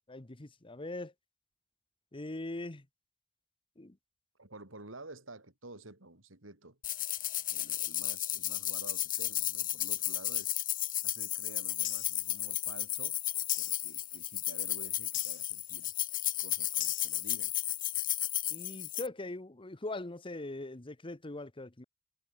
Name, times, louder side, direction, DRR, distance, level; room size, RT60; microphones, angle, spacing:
voice 1, 0.1-1.1 2.1-2.9 3.8-4.0 18.5-21.8, left 2 dB, 25° left, 1.1 m, -41 dB
voice 2, 4.4-6.8 7.5-10.5 11.0-13.2 13.6-15.9 16.4-17.5, right 2 dB, 80° right, 4.9 m, -51 dB
sound 1, 6.8-19.1, left 14 dB, 45° left, 1.2 m, -34 dB
sound 2, 10.3-10.7 11.8-12.3 13.5-14.0 15.1-15.6 16.8-17.3, left 16 dB, 65° left, 1.5 m, -41 dB
head